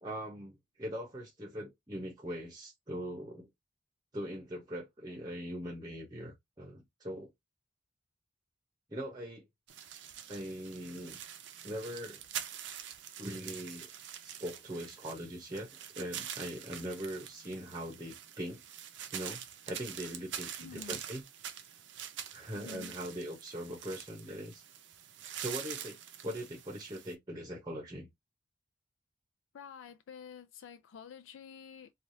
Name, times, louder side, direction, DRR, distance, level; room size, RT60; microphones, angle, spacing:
voice 1, 0.0-3.5 4.1-7.3 8.9-9.5 10.3-11.2 11.6-12.2 13.2-13.9 14.2-15.7 15.9-18.6 19.1-19.4 19.7-21.2 22.3-24.6 25.3-26.0 26.2-28.1, equal, 20° right, 0.8 m, -41 dB
sound 1, 9.7-27.1, right 9 dB, 70° right, 0.5 m, -45 dB
voice 2, 20.6-21.0 22.5-22.9 29.5-31.9, left 6 dB, 90° left, 0.3 m, -49 dB
3.2 x 2.4 x 2.6 m
head